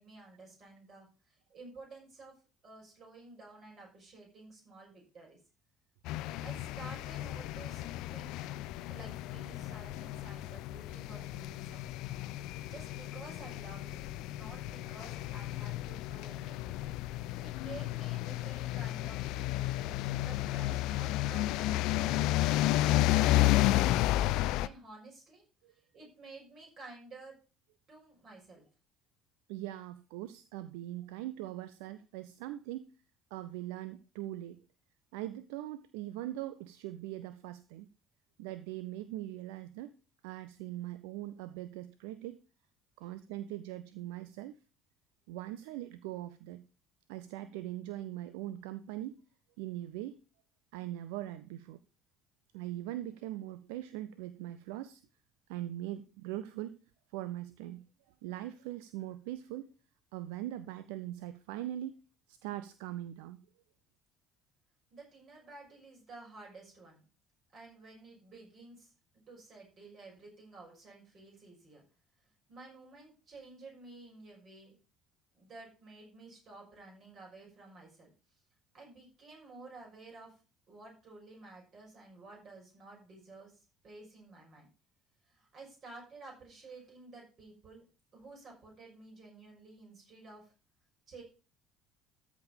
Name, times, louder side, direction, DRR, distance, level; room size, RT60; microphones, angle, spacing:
voice 1, 0.0-2.3 2.6-5.4 6.4-8.5 8.9-11.9 12.3-14.0 14.3-16.8 17.1-22.5 22.8-25.4 25.7-27.4 27.9-28.6 64.9-67.0 67.5-68.9 69.3-71.8 72.5-74.7 75.3-78.1 78.7-80.3 80.7-84.7 85.2-87.8 88.1-90.5 91.1-91.2, right 3 dB, 40° right, 6.1 m, -52 dB
sound 1, 6.1-24.7, left 16 dB, 60° left, 0.4 m, -32 dB
voice 2, 29.5-32.9 33.3-34.6 35.1-37.9 38.4-39.9 40.2-42.4 43.0-44.6 45.3-46.6 47.1-49.2 49.6-50.2 50.7-51.8 52.5-55.0 55.5-56.8 57.1-57.8 58.2-59.7 60.1-62.0 62.3-63.4, right 14 dB, 65° right, 0.4 m, -41 dB
13.5 x 5.1 x 5.2 m
figure-of-eight pair, 55°, 0 cm